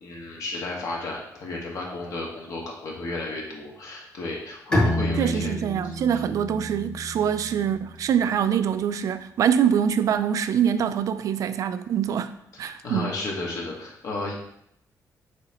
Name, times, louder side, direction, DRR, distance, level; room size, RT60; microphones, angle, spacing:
voice 1, 0.0-5.5 5.8-6.2 12.6-14.3, left 2 dB, 65° left, 1.6 m, -33 dB
Bowed string instrument, 4.7-8.2, left 1 dB, 20° left, 1.6 m, -29 dB
voice 2, 5.2-13.1, right 8 dB, 60° right, 0.4 m, -24 dB
6.7 x 4.9 x 3.0 m
wide cardioid pair, 165°, 7 cm